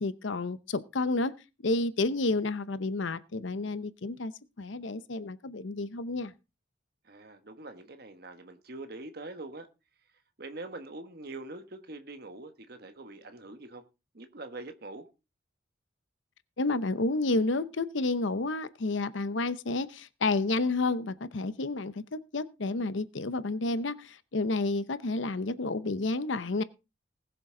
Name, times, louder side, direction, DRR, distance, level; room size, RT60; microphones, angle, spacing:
voice 1, 0.0-1.3 1.6-4.3 4.6-6.3 16.6-26.6, left 3 dB, 75° left, 0.8 m, -30 dB
voice 2, 7.0-9.7 10.4-13.8 14.1-15.1, right 2 dB, 50° right, 1.3 m, -44 dB
20.0 x 6.8 x 3.8 m
head